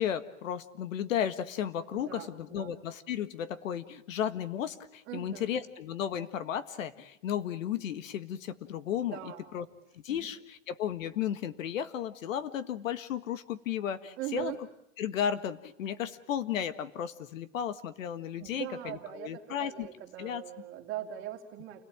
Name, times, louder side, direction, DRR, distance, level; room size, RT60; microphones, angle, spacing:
voice 1, 0.0-9.7 10.0-14.5 15.0-19.9 20.2-20.4, left 9 dB, 85° left, 12 dB, 1.7 m, -34 dB
voice 2, 1.9-2.7 5.1-5.5 9.1-9.5 10.1-10.3 14.2-14.6 18.4-21.8, right 12 dB, 30° right, 1 dB, 3.1 m, -40 dB
29.0 x 18.0 x 8.9 m, 0.82 s
supercardioid pair, 160°, 39 cm